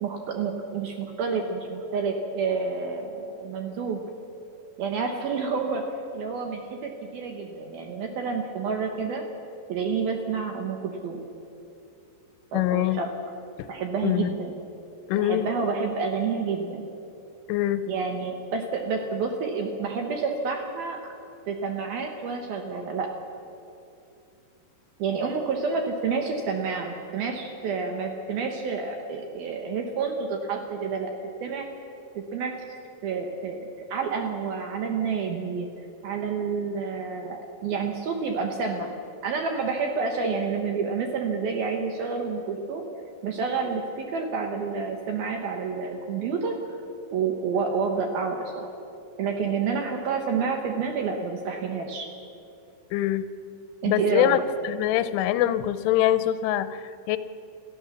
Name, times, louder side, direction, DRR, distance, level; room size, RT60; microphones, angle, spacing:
voice 1, 0.0-4.0 4.8-5.8 6.1-9.2 9.7-11.2 12.5-13.1 13.7-14.5 15.2-16.9 17.9-21.0 21.5-23.1 25.0-31.1 31.4-31.7 32.1-32.6 33.0-33.6 33.9-35.7 36.0-38.9 39.2-42.8 43.2-46.6 47.1-48.7 49.2-52.1 53.8-54.4, right 5 dB, 65° right, 3 dB, 2.5 m, -29 dB
voice 2, 12.5-13.0 13.6-13.7 14.0-14.3 15.1-15.5 17.5-17.8 52.9-53.3 53.9-57.2, left 13 dB, 80° left, 13 dB, 3.0 m, -24 dB
27.5 x 14.5 x 7.2 m, 2.7 s
omnidirectional pair, 5.8 m